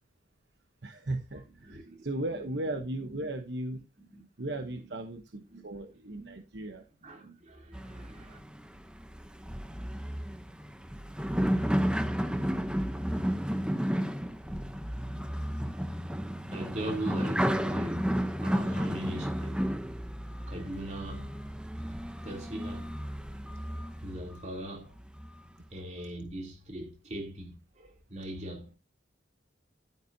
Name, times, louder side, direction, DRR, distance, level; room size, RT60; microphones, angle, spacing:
voice 1, 0.8-3.8 4.4-6.8, right 1 dB, 65° right, 1.0 m, -36 dB
voice 2, 1.6-2.1 2.3-2.5 3.1-3.2 4.1-4.2 4.5-4.6 4.9-5.0 5.5-5.7 6.1-6.4 7.0-8.4 16.5-18.1 18.4-19.6 20.5-21.3 22.2-22.9 23.8-24.9 25.7-28.7, right 1 dB, 35° right, 3.2 m, -40 dB
sound 1, 7.7-24.4 25.0-25.5, equal, 5° right, 0.8 m, -32 dB
11.5 x 8.9 x 2.7 m
head